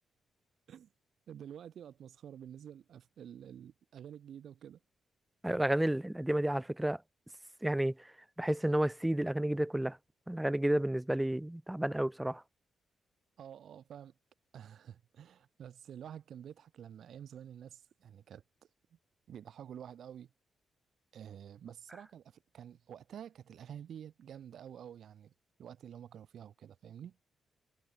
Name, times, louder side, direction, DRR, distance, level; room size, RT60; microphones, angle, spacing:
voice 1, 1.3-4.8 13.4-14.1 14.5-18.4 18.9-19.0 19.3-20.3 21.1-25.3 25.6-27.2, right 9 dB, 70° right, 2.8 m, -49 dB
voice 2, 5.4-7.0 7.6-7.9 8.4-10.0 10.3-12.4, right 1 dB, 10° right, 0.5 m, -31 dB
cardioid pair, 95°, 0 cm